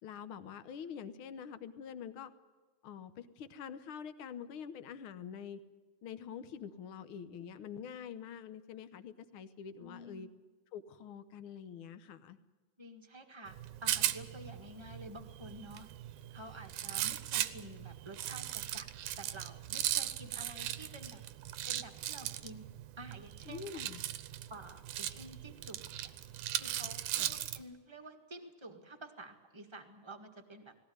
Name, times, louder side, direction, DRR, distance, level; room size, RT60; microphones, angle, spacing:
voice 1, 0.0-2.3 2.8-5.6 6.0-10.3 10.7-12.4 23.4-24.0 27.1-27.3, left 7 dB, 65° left, 12 dB, 1.3 m, -46 dB
voice 2, 9.8-10.3 12.8-15.9 16.3-18.9 19.2-21.2 21.7-22.7 23.0-23.8 24.5-26.1 26.6-30.7, right 1 dB, 20° right, 4 dB, 0.8 m, -50 dB
Rattle, 13.5-27.6, right 13 dB, 85° right, 2.3 m, -38 dB
19.5 x 16.5 x 9.5 m, 1.3 s
omnidirectional pair, 3.6 m